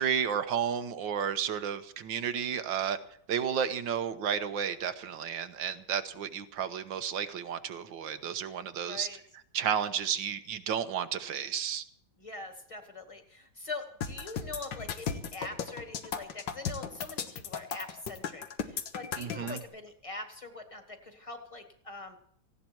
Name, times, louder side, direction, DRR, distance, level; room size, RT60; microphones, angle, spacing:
voice 1, 0.0-3.0 3.3-9.1 9.5-11.8 19.2-19.6, right 8 dB, 90° right, 10 dB, 1.8 m, -32 dB
voice 2, 8.8-9.2 12.2-22.2, left 3 dB, 15° left, 5 dB, 2.0 m, -43 dB
sound 1, 14.0-19.6, left 7 dB, 75° left, 1.9 m, -36 dB
18.0 x 16.0 x 4.5 m, 0.66 s
omnidirectional pair, 2.0 m